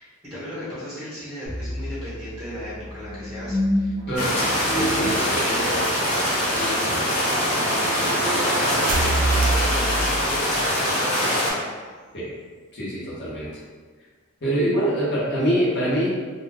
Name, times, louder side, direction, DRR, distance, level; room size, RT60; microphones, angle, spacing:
voice 1, 0.0-6.0 6.4-9.9 10.2-11.6, left 1 dB, 10° right, -12 dB, 0.9 m, -36 dB
sound 1, 1.4-10.6, equal, 20° left, 0.7 m, -32 dB
sound 2, 4.0-10.8, right 2 dB, 40° right, 0.3 m, -29 dB
sound 3, 4.2-11.5, equal, 80° left, 0.8 m, -23 dB
voice 2, 4.7-5.5 12.1-12.3 12.7-13.6 14.4-16.2, equal, 55° left, -7 dB, 1.0 m, -24 dB
2.3 x 2.2 x 3.3 m, 1.5 s
head